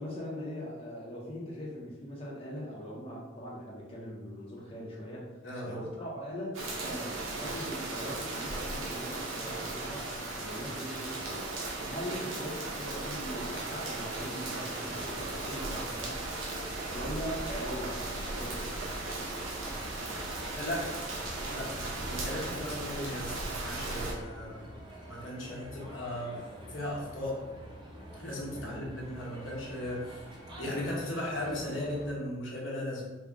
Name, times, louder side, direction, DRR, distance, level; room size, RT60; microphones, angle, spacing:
voice 1, 0.0-11.5 11.9-16.3 16.9-18.8 28.6-28.9, equal, 30° left, -6 dB, 0.6 m, -41 dB
voice 2, 5.4-5.8 20.5-21.0 21.5-21.7 22.1-24.7 25.1-26.4 26.7-27.4 28.2-30.2 30.6-33.0, left 1 dB, 75° left, -4 dB, 1.0 m, -37 dB
sound 1, 6.5-24.1, right 2 dB, 90° right, 0.7 m, -37 dB
sound 2, 14.3-32.1, right 1 dB, 25° right, 0.5 m, -47 dB
3.6 x 2.1 x 3.5 m, 1.1 s
head